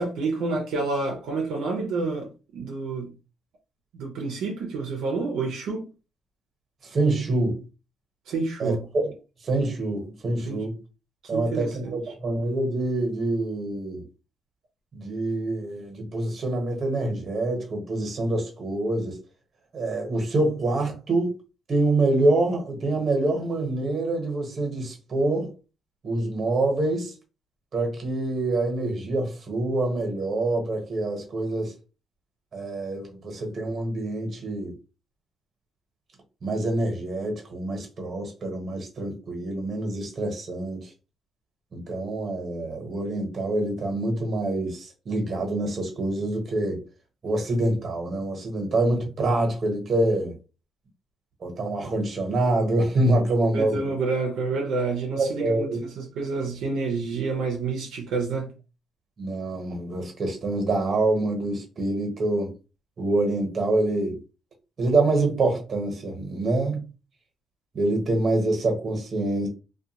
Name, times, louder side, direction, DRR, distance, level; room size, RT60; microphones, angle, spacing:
voice 1, 0.0-3.1 3.9-5.9 8.3-8.8 10.5-10.6 11.3-12.0 53.5-58.5, right 4 dB, 85° right, 0.6 m, -29 dB
voice 2, 6.8-7.6 8.6-9.1 9.4-10.7 11.3-14.0 14.9-19.2 19.7-21.4 21.7-25.5 26.0-27.1 27.7-31.7 32.5-34.7 36.4-40.9 41.7-46.8 47.2-50.4 51.4-53.9 55.2-55.8 59.2-62.5 63.0-64.2 64.8-66.9 67.7-69.5, right 2 dB, 45° right, 1.1 m, -26 dB
2.4 x 2.2 x 2.8 m
cardioid pair, 95°, 0 cm